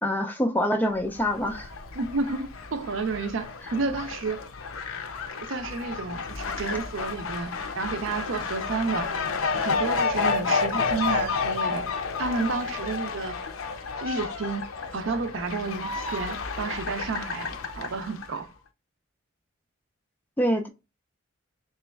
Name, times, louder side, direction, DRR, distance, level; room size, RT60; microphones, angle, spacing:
voice 1, 0.0-1.7 20.4-20.7, equal, 10° left, 0.3 m, -25 dB
Fowl, 1.1-18.4, left 4 dB, 85° left, 0.5 m, -31 dB
voice 2, 1.9-4.4 5.4-9.1 9.6-11.9 12.2-13.3 14.0-14.6 14.9-18.5, right 4 dB, 70° right, 0.5 m, -31 dB
3.3 x 3.0 x 3.3 m
head